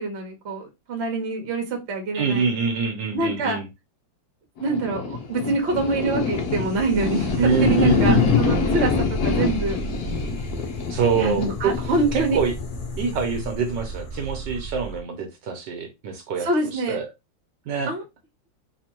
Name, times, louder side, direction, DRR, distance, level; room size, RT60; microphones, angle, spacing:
voice 1, 0.0-2.5 3.1-3.6 4.6-9.8 11.2-12.4 16.4-17.0 17.9-18.0, right 3 dB, 45° right, 3 dB, 1.0 m, -26 dB
voice 2, 2.1-3.7 7.4-8.2 10.9-11.7 12.1-12.5 13.0-17.1 17.7-17.9, right 5 dB, 70° right, 5 dB, 1.3 m, -25 dB
sound 1, 4.6-15.0, left 4 dB, 55° left, 1.3 m, -25 dB
4.2 x 2.6 x 2.9 m, 0.22 s
omnidirectional pair, 2.1 m